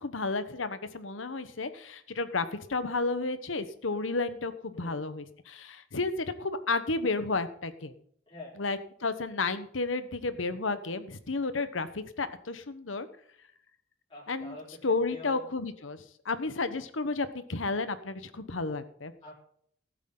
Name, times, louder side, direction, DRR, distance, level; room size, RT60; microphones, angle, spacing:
voice 1, 0.0-7.9 8.6-13.1 14.3-14.6 14.8-19.1, left 3 dB, 85° left, 12 dB, 1.1 m, -32 dB
voice 2, 8.3-8.6 14.1-15.5 19.2-19.3, left 1 dB, 30° left, -4 dB, 4.3 m, -46 dB
19.0 x 8.2 x 3.9 m, 0.64 s
head